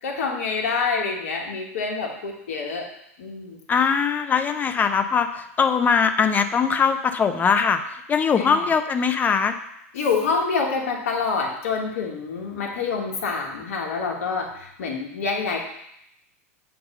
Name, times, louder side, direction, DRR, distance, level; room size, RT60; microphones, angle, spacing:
voice 1, 0.0-2.9 3.2-3.6 8.4-8.7 9.9-15.6, left 4 dB, 70° left, 1 dB, 1.4 m, -27 dB
voice 2, 3.7-9.6, left 6 dB, 20° left, 8 dB, 0.5 m, -21 dB
7.7 x 2.8 x 5.4 m, 0.77 s
hypercardioid pair, 105°, 8 cm